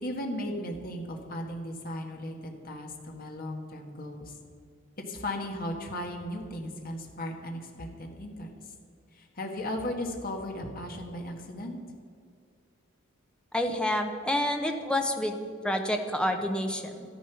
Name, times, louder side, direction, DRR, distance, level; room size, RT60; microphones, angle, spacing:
voice 1, 0.0-4.4 5.0-8.5 9.1-11.8, left 1 dB, 45° left, 2 dB, 1.6 m, -36 dB
voice 2, 13.5-15.4 15.6-17.0, left 1 dB, 5° left, 4 dB, 1.0 m, -28 dB
12.5 x 10.5 x 5.8 m, 2.2 s
head